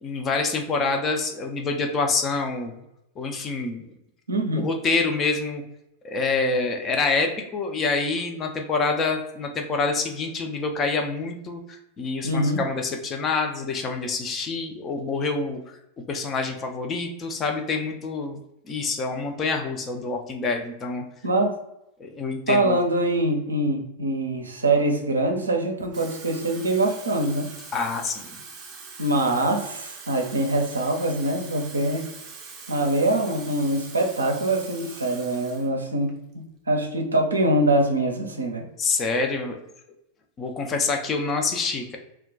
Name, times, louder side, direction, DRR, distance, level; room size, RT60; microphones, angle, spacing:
voice 1, 0.0-2.8 3.2-3.9 4.6-5.6 6.0-15.8 16.1-21.0 22.0-22.8 27.7-28.4 38.8-39.6 40.4-42.0, left 4 dB, 25° left, 3 dB, 0.5 m, -26 dB
voice 2, 4.3-4.7 12.2-12.6 21.2-21.6 22.5-27.5 29.0-32.1 32.7-38.6, right 1 dB, 75° right, 3 dB, 0.5 m, -24 dB
Water tap faucet / Fill (with liquid), 25.8-35.7 36.1-36.3, right 5 dB, 35° right, 0.6 m, -43 dB
2.3 x 2.2 x 3.7 m, 0.84 s
figure-of-eight pair, 90°, 0 cm